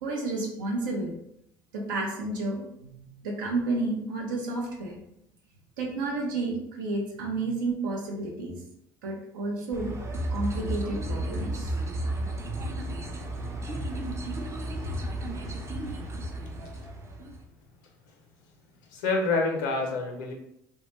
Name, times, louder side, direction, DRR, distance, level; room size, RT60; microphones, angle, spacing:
voice 1, 0.0-1.2 1.7-5.0 5.8-8.6 9.0-10.0 10.3-11.7, right 2 dB, 85° right, 0 dB, 0.5 m, -31 dB
sound 1, 9.7-17.4, right 1 dB, 30° right, 0.5 m, -33 dB
voice 2, 18.9-20.3, left 3 dB, 80° left, 2 dB, 0.5 m, -27 dB
2.2 x 2.1 x 2.9 m, 0.77 s
hypercardioid pair, 65°, 10 cm